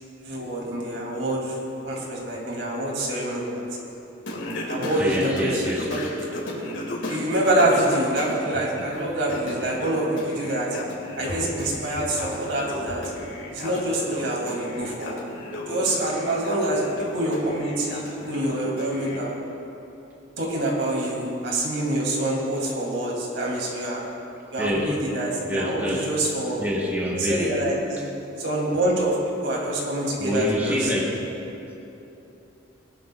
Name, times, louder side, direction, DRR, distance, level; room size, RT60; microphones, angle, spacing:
voice 1, 0.2-1.6 1.8-3.7 4.6-6.0 6.3-6.5 7.1-10.7 11.2-13.0 13.5-15.1 15.7-19.4 20.4-24.0 24.5-26.6 27.2-28.1 28.4-29.1 29.4-30.9, right 1 dB, 75° right, -3 dB, 2.8 m, -26 dB
Singing, 4.3-8.4 8.8-19.2, left 1 dB, 80° left, 2.2 m, -34 dB
voice 2, 4.9-5.9 24.6-25.0 25.4-26.0 26.6-27.6 28.0-28.1 30.2-31.1, left 1 dB, 10° right, -4 dB, 1.4 m, -26 dB
20.0 x 12.0 x 2.4 m, 2.9 s
head